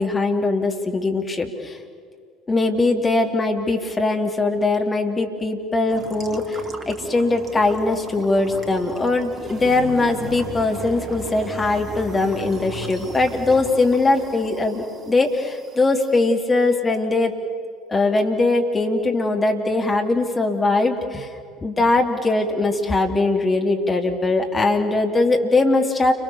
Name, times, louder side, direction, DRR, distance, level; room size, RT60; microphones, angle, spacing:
voice 1, 0.0-1.8 2.5-17.3 17.9-21.3 21.6-26.1, left 2 dB, 20° left, 2 dB, 3.2 m, -21 dB
sound 1, 5.9-16.3, right 2 dB, 30° right, 2.2 m, -37 dB
29.5 x 24.5 x 7.2 m, 2.3 s
figure-of-eight pair, 65°, 0 cm